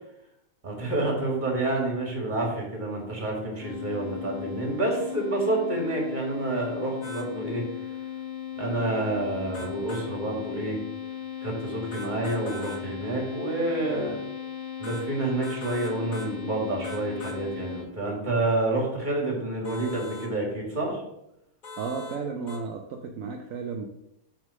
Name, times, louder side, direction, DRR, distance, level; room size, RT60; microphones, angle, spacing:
voice 1, 0.6-7.6 8.6-10.8 11.4-14.2 14.8-21.0, right 2 dB, 35° right, -1 dB, 2.1 m, -28 dB
sound 1, 3.6-17.8, left 10 dB, 65° left, 1.9 m, -37 dB
sound 2, 7.0-7.3 9.5-10.1 11.9-12.8 14.8-15.1 15.4-16.3 16.8-17.4 19.6-20.3 21.6-22.2 22.5-22.6, left 1 dB, 35° left, 0.9 m, -41 dB
voice 2, 21.8-23.9, right 5 dB, 75° right, 4 dB, 1.0 m, -33 dB
6.3 x 3.7 x 6.2 m, 0.84 s
omnidirectional pair, 1.4 m